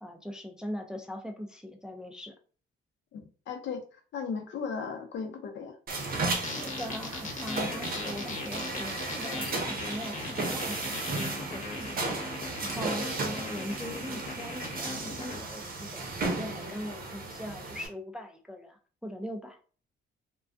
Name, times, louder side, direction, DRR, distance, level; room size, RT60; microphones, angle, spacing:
voice 1, 0.0-2.3 6.5-12.2 12.6-19.6, equal, 5° right, 3 dB, 0.3 m, -40 dB
voice 2, 3.1-5.7, left 5 dB, 65° left, 5 dB, 0.6 m, -36 dB
sound 1, 5.9-17.9, right 3 dB, 45° right, 0.7 m, -35 dB
sound 2, 6.4-15.4, left 3 dB, 40° left, 0.9 m, -39 dB
2.2 x 2.2 x 2.5 m, 0.40 s
cardioid pair, 90°, 20 cm